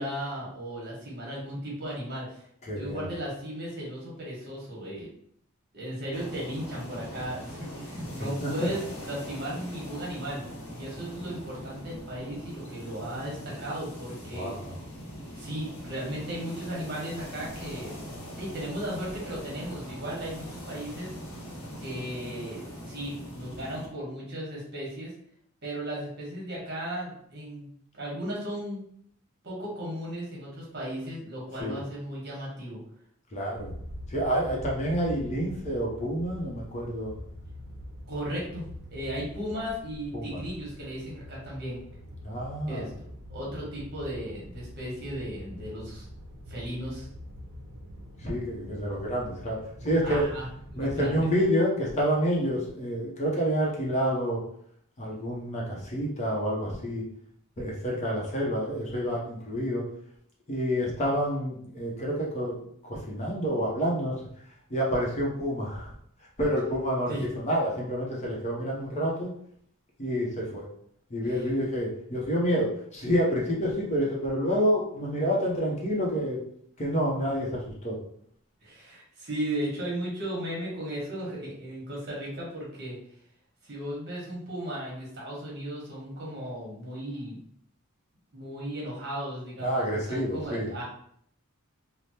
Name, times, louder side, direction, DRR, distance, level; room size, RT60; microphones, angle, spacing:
voice 1, 0.0-2.4 2.8-5.1 5.7-14.5 15.3-18.0 18.3-21.1 21.8-25.1 25.6-27.7 27.9-28.8 29.4-32.8 38.1-38.6 38.9-41.8 42.7-46.0 46.5-47.1 50.0-50.5 50.7-51.3 67.1-67.2 78.6-83.0 83.6-87.4 88.3-90.8, equal, 50° right, -4 dB, 1.1 m, -36 dB
voice 2, 2.6-3.0 8.4-8.7 14.3-14.8 31.6-31.8 33.3-33.7 34.1-37.1 40.1-40.4 42.2-42.9 48.2-50.2 50.7-54.4 55.0-57.0 57.6-59.8 60.5-64.2 64.7-65.9 66.4-69.3 70.0-70.7 71.1-76.4 76.8-78.0 89.6-90.7, equal, 30° left, -3 dB, 0.6 m, -28 dB
sound 1, 6.1-23.9, equal, 75° left, 0.8 m, -41 dB
sound 2, 33.5-51.2, equal, 65° right, 0.6 m, -44 dB
3.3 x 2.0 x 2.8 m, 0.66 s
head